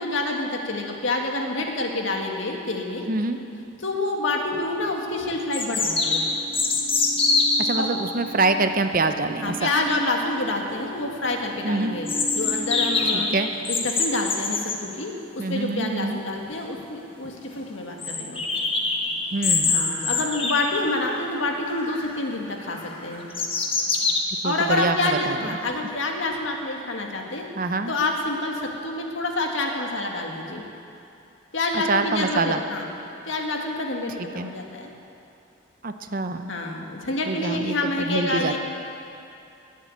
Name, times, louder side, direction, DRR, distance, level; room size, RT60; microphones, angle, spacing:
voice 1, 0.0-3.1 3.8-6.2 7.8-7.9 9.4-12.1 12.4-13.3 13.7-18.4 19.7-23.2 24.4-27.5 27.9-30.6 31.5-32.9 33.3-34.9 36.5-38.6, left 2 dB, 65° left, 1 dB, 1.9 m, -27 dB
voice 2, 3.1-3.4 7.6-9.7 11.6-11.9 13.1-13.5 15.4-16.2 19.3-19.8 24.4-25.6 27.6-27.9 31.7-32.6 34.3-34.5 35.8-36.5 37.3-38.6, right 3 dB, 45° right, 8 dB, 0.7 m, -25 dB
sound 1, 3.9-4.4 4.7-13.5, right 2 dB, 70° right, 1.8 m, -38 dB
sound 2, 4.5-4.6 5.5-7.7 12.1-14.8 16.4-16.5 16.8-16.9 17.3-17.4 18.0-21.2 21.6-22.2 22.7-24.2, left 3 dB, 25° left, 1.3 m, -25 dB
21.5 x 7.4 x 8.4 m, 2.7 s
head